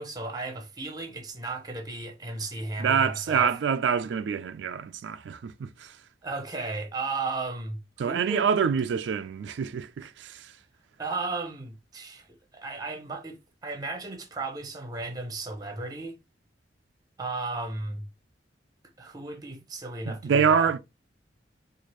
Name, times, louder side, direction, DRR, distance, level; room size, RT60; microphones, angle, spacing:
voice 1, 0.0-3.5 6.2-8.5 11.0-12.3 12.5-16.2 17.2-18.0 19.0-20.7, right 3 dB, 20° right, 0.8 m, -35 dB
voice 2, 2.8-6.0 8.0-10.6 20.1-20.8, right 6 dB, 80° right, 0.3 m, -26 dB
4.5 x 2.5 x 2.9 m
head